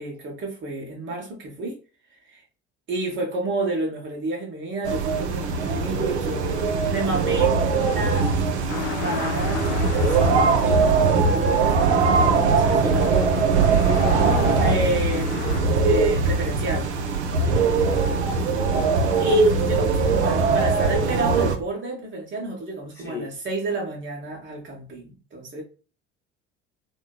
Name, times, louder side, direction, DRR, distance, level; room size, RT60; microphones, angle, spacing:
voice 1, 0.0-1.7 2.2-2.4 2.9-8.3 9.0-13.1 14.6-16.9 19.2-25.6, right 2 dB, 35° right, 0.8 m, -30 dB
sound 1, 4.8-21.6, right 4 dB, 75° right, 0.5 m, -21 dB
sound 2, 8.7-15.6, left 8 dB, 65° left, 0.5 m, -35 dB
voice 2, 12.7-14.4 18.0-18.9 22.9-23.3, left 1 dB, 10° left, 0.9 m, -33 dB
2.6 x 2.2 x 2.2 m
figure-of-eight pair, 60°, 34 cm